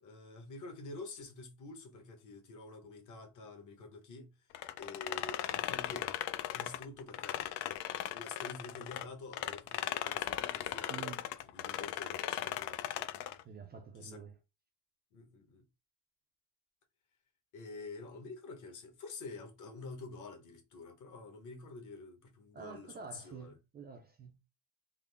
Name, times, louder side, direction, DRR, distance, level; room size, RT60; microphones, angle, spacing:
voice 1, 0.0-4.3 4.8-6.2 6.5-7.4 8.1-11.1 11.4-13.1 14.0-14.2 15.1-15.6 17.5-23.6, left 3 dB, 50° left, 1.1 m, -48 dB
sound 1, 4.5-9.0 9.3-13.4, left 13 dB, 70° left, 0.5 m, -38 dB
voice 2, 10.9-11.2 13.4-14.4 22.5-24.4, right 6 dB, 25° right, 0.4 m, -48 dB
3.7 x 2.0 x 3.3 m
cardioid pair, 155°, 40 cm